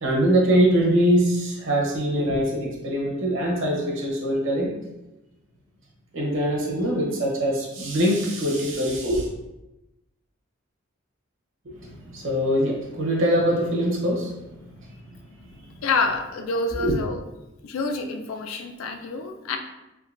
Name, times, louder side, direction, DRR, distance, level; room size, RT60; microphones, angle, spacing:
voice 1, 0.0-4.7 6.1-9.3 11.6-14.3 14.9-15.0 15.5-15.6 16.8-16.9, equal, 65° right, -2 dB, 1.0 m, -23 dB
voice 2, 15.8-17.2 17.6-19.6, left 3 dB, 80° left, 5 dB, 0.4 m, -27 dB
3.6 x 3.1 x 2.5 m, 0.96 s
head